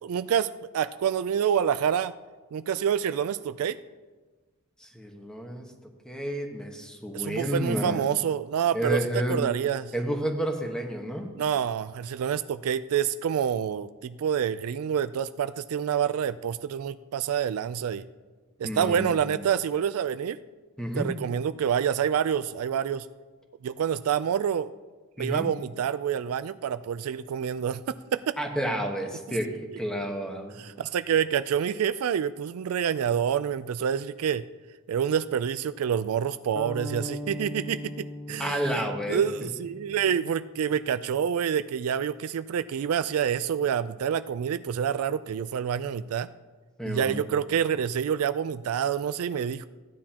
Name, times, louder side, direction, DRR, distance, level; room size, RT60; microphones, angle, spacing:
voice 1, 0.0-2.1 2.5-3.8 7.1-9.9 11.4-18.1 18.6-20.4 21.0-23.1 23.6-24.7 25.2-28.4 30.6-34.5 34.9-38.8 39.1-46.3 46.8-49.7, right 8 dB, 70° right, 13 dB, 0.3 m, -27 dB
voice 2, 4.8-5.7 6.0-8.1 8.7-9.4 9.9-11.3 18.6-19.2 20.8-21.1 25.2-25.5 28.4-29.5 29.8-30.6 38.4-39.2 46.8-47.2, equal, 5° left, 2 dB, 1.2 m, -30 dB
sound 1, 36.5-40.5, equal, 15° right, 0.6 m, -39 dB
15.5 x 9.5 x 2.9 m, 1.3 s
head